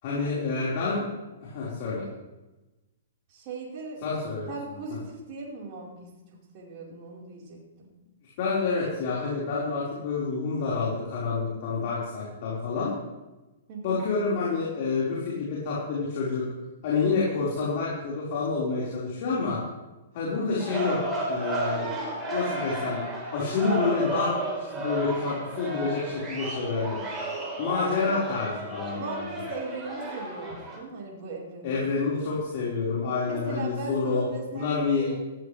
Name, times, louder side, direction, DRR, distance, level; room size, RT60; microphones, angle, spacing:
voice 1, 0.0-1.1 1.4-2.1 4.0-4.5 8.4-12.9 13.8-16.4 16.8-19.6 20.1-21.9 22.3-23.0 23.3-24.3 24.6-27.0 27.6-29.2 31.6-34.3 34.5-35.1, left 4 dB, 45° left, -6 dB, 5.1 m, -28 dB
voice 2, 3.3-4.0 4.5-7.9 13.7-14.0 28.0-28.2 29.0-31.8 33.3-35.3, right 3 dB, 40° right, -3 dB, 4.7 m, -39 dB
sound 1, 20.6-30.8, right 2 dB, 15° right, 4.4 m, -33 dB
18.0 x 15.0 x 3.5 m, 1.1 s
figure-of-eight pair, 110°, 0 cm